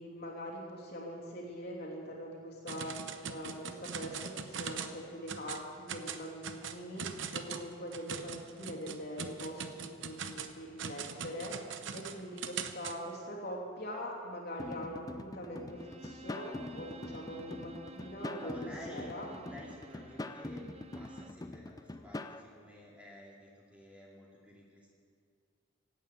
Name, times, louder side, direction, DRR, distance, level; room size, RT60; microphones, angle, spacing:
voice 1, 0.0-19.3, equal, 50° left, -3 dB, 3.0 m, -43 dB
sound 1, 2.7-5.0 5.3-5.6 5.9-13.0, right 6 dB, 60° right, 0.8 m, -41 dB
sound 2, 14.6-22.4, left 2 dB, 15° left, 0.4 m, -44 dB
Bowed string instrument, 15.7-21.5, right 2 dB, 30° right, 0.5 m, -52 dB
voice 2, 18.4-19.1 19.4-24.9, equal, 5° right, -4 dB, 2.4 m, -52 dB
16.5 x 9.2 x 8.5 m, 2.2 s
head